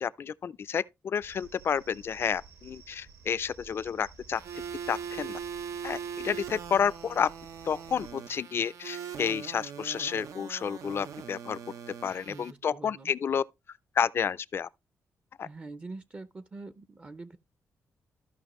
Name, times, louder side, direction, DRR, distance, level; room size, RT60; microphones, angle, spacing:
voice 1, 0.0-4.4 4.9-5.4 5.8-7.3 7.6-11.6 12.0-13.4 14.0-14.7 15.4-15.5, left 7 dB, 50° left, 0.4 m, -30 dB
sound 1, 1.2-8.1, right 5 dB, 60° right, 1.4 m, -54 dB
sound 2, 4.4-12.5, right 7 dB, 80° right, 0.7 m, -41 dB
voice 2, 12.3-13.1 15.4-17.4, right 3 dB, 25° right, 0.5 m, -44 dB
13.5 x 5.6 x 3.0 m
cardioid pair, 125°, 5 cm